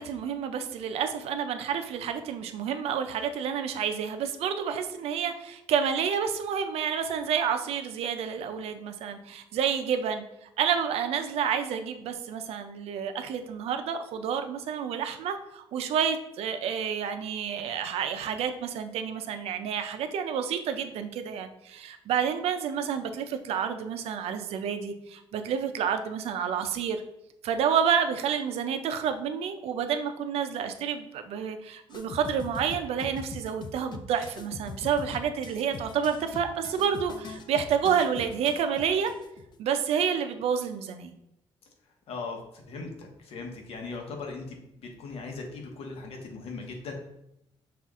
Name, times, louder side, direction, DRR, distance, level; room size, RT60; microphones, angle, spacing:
voice 1, 0.0-27.0 27.4-39.1 39.6-41.1, right 7 dB, 90° right, 8 dB, 0.5 m, -29 dB
sound 1, 31.9-39.5, left 4 dB, 45° left, 0.4 m, -42 dB
voice 2, 42.1-46.9, left 3 dB, 75° left, 2 dB, 0.9 m, -39 dB
5.6 x 2.4 x 3.6 m, 0.85 s
cardioid pair, 135°, 10 cm